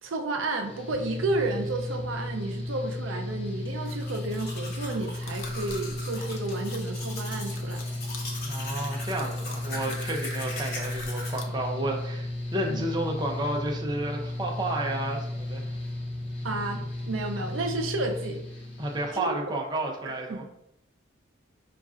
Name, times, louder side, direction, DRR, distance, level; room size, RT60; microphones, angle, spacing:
voice 1, 0.0-7.8 9.9-10.0 12.7-12.9 16.4-18.4 19.1-19.3 20.3-20.4, right 2 dB, 85° right, 5 dB, 0.5 m, -32 dB
Mechanical fan, 0.6-19.1, left 1 dB, 30° left, 0.7 m, -34 dB
Domestic sounds home sounds, 3.7-11.4, left 2 dB, 50° left, 1.1 m, -40 dB
sound 1, 5.1-11.4, left 5 dB, 90° left, 0.6 m, -46 dB
voice 2, 8.4-15.8 18.8-20.4, right 1 dB, 20° right, 0 dB, 0.5 m, -31 dB
5.2 x 2.3 x 2.4 m, 0.80 s
head